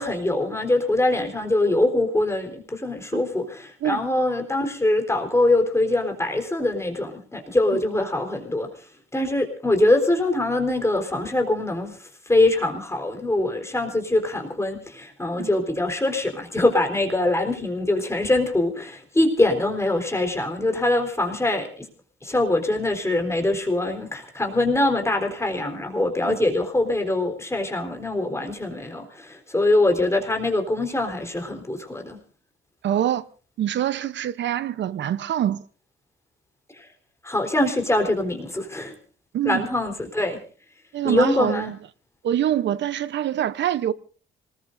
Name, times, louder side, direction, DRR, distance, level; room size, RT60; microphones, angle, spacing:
voice 1, 0.0-8.7 9.1-12.0 12.3-21.9 22.2-32.2 37.2-38.9 39.4-40.4 41.0-41.7, left 2 dB, 15° left, 4.0 m, -23 dB
voice 2, 32.8-33.2 33.6-35.6 39.3-39.7 40.9-41.8 42.2-43.9, right 11 dB, 65° right, 0.9 m, -24 dB
26.0 x 20.0 x 2.7 m
cardioid pair, 90°, 20 cm